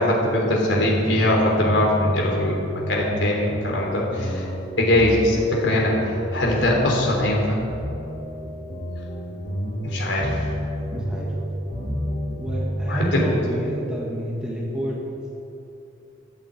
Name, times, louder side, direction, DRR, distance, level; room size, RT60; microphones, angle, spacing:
voice 1, 0.0-2.6 2.9-4.5 4.8-5.9 6.3-7.6 9.8-10.3 12.9-13.2, left 1 dB, 90° left, -2 dB, 3.4 m, -21 dB
sound 1, 0.7-13.4, equal, 45° left, 3.2 m, -30 dB
voice 2, 10.9-11.3 12.4-15.0, equal, 5° right, -4 dB, 1.8 m, -29 dB
14.0 x 8.8 x 8.4 m, 2.8 s
head